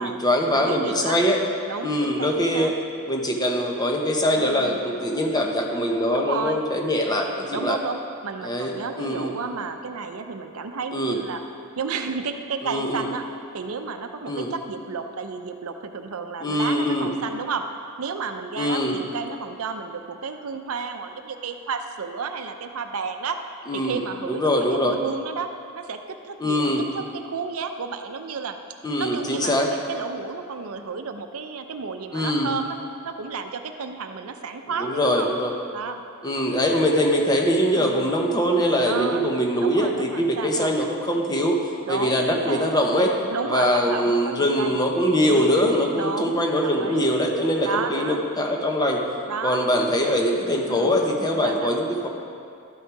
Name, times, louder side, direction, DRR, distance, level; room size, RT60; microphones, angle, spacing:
voice 1, 0.0-1.4 1.8-2.7 3.1-7.8 8.4-9.3 10.9-11.2 12.6-13.1 14.3-14.5 16.4-17.1 18.6-18.9 23.7-24.0 24.3-25.0 26.4-26.8 28.8-29.7 32.1-32.5 34.8-35.5 36.2-41.6 41.9-43.2 43.4-49.0 49.4-52.1, equal, 20° left, 1 dB, 0.9 m, -23 dB
voice 2, 0.5-1.3 1.7-2.7 4.3-4.9 6.1-6.6 7.5-11.4 11.8-13.3 13.5-17.6 18.0-23.4 23.7-25.5 25.8-28.6 29.0-32.8 33.0-35.3 35.7-36.0 37.7-38.1 38.8-39.3 39.6-40.7 41.8-42.7 43.2-44.8 45.3-45.6 46.0-47.0 47.6-48.2 49.2-49.6 50.7-51.0 51.4-51.7, right 5 dB, 75° right, 7 dB, 0.6 m, -32 dB
12.0 x 6.5 x 4.6 m, 2.5 s
head